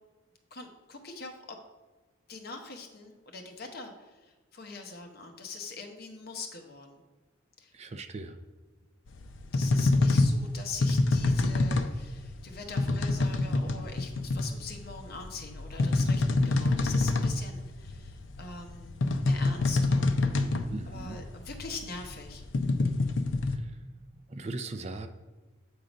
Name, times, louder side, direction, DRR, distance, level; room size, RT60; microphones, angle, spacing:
voice 1, 0.5-1.6 2.3-7.0 7.6-7.7 9.5-19.0 19.2-20.1 20.9-22.4, left 4 dB, 50° left, 4 dB, 0.9 m, -43 dB
voice 2, 7.7-8.4 20.7-21.2 23.5-23.8 24.3-25.1, right 2 dB, 30° right, 8 dB, 0.4 m, -39 dB
sound 1, 9.1-23.6, left 2 dB, 65° left, 0.5 m, -27 dB
7.9 x 3.8 x 5.1 m, 1.3 s
head